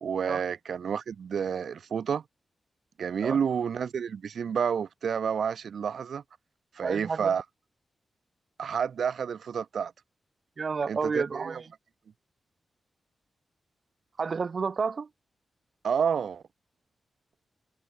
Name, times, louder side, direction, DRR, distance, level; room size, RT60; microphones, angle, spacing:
voice 1, 0.0-2.2 3.0-6.2 6.7-7.4 8.6-9.9 10.9-11.6 15.8-16.4, right 7 dB, 70° right, 1.1 m, -29 dB
voice 2, 6.8-7.3 10.6-11.7 14.2-15.1, right 5 dB, 45° right, 0.7 m, -30 dB
wide cardioid pair, 125°, 0 cm